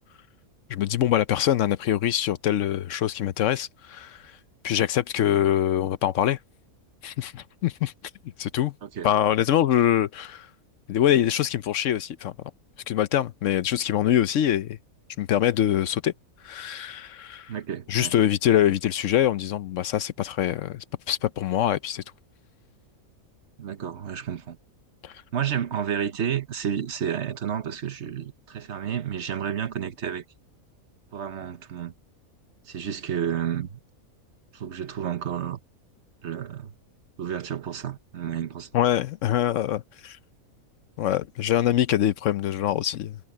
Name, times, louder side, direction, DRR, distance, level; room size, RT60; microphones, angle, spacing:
voice 1, 0.7-4.4 4.6-6.4 7.0-7.9 8.4-8.7 9.0-10.5 10.9-12.3 12.9-14.8 15.2-16.1 16.4-17.5 17.9-22.0 25.0-25.1 38.7-40.2 41.0-43.2, left 11 dB, 70° left, 0.9 m, -24 dB
voice 2, 17.5-18.2 23.6-24.6 25.3-30.2 31.1-31.9 32.7-33.8 34.5-35.6 36.2-36.7 37.2-38.7, right 8 dB, 55° right, 1.1 m, -31 dB
omnidirectional pair, 1.5 m